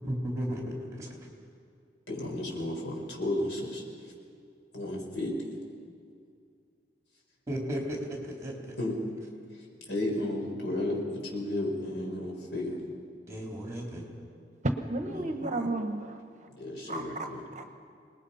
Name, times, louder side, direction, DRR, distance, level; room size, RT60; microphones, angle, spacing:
voice 1, 0.1-1.1 7.5-8.8 13.3-14.0, equal, 15° right, -1 dB, 3.8 m, -34 dB
voice 2, 2.1-4.1 4.7-5.5 8.8-9.0 9.5-12.8 15.1-15.4 16.6-17.5, left 1 dB, 80° left, 0 dB, 5.0 m, -33 dB
voice 3, 14.6-16.2 16.9-17.0 17.6-17.7, right 2 dB, 40° right, 7 dB, 1.2 m, -32 dB
27.5 x 20.0 x 5.8 m, 2.3 s
head